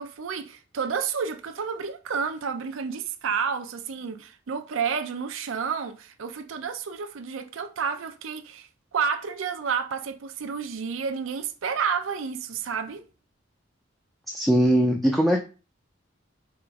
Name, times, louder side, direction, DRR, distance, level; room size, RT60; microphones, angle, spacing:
voice 1, 0.0-13.0, right 6 dB, 90° right, 0.5 m, -30 dB
voice 2, 14.3-15.4, equal, ahead, 0.4 m, -21 dB
5.0 x 3.0 x 3.4 m
head